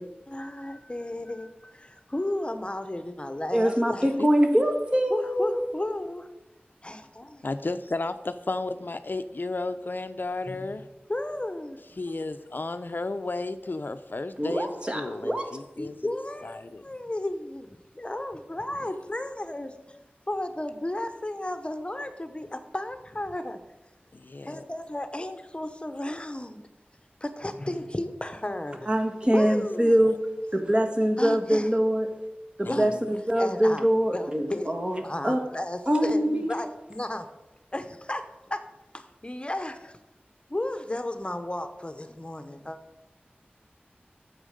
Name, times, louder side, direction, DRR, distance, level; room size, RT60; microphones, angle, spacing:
voice 1, 0.0-4.1 5.1-6.3 6.8-7.4 10.5-10.8 11.1-11.8 15.8-17.7 18.0-20.0 20.3-23.6 24.5-26.6 27.2-28.9 29.3-30.0 31.2-31.7 32.7-32.9 33.4-33.9 34.1-34.7 35.0-37.3 37.7-38.6 38.9-40.0 40.5-42.8, left 1 dB, 30° left, 8 dB, 0.9 m, -33 dB
voice 2, 3.5-5.6 14.4-15.5 28.9-30.2 30.5-32.1 32.6-35.4 35.9-36.5, equal, 25° right, 4 dB, 1.6 m, -24 dB
voice 3, 7.4-10.9 12.0-16.1 16.4-16.8 24.3-24.6 32.6-32.9, left 2 dB, 60° left, 10 dB, 0.5 m, -33 dB
8.7 x 7.4 x 6.5 m, 1.0 s
wide cardioid pair, 45°, 4 cm